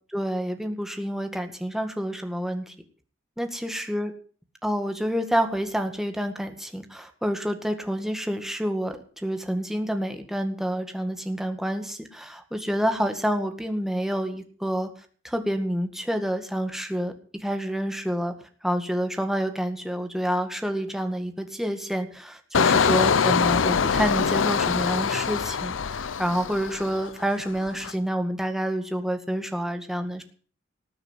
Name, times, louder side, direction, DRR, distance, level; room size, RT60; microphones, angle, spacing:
voice 1, 0.1-2.7 3.4-4.1 4.6-14.9 15.2-18.3 18.6-30.2, equal, ahead, 6 dB, 1.9 m, -28 dB
Engine, 22.5-27.2 27.6-27.9, left 6 dB, 70° left, 0.6 m, -23 dB
19.0 x 6.8 x 8.2 m, 0.43 s
head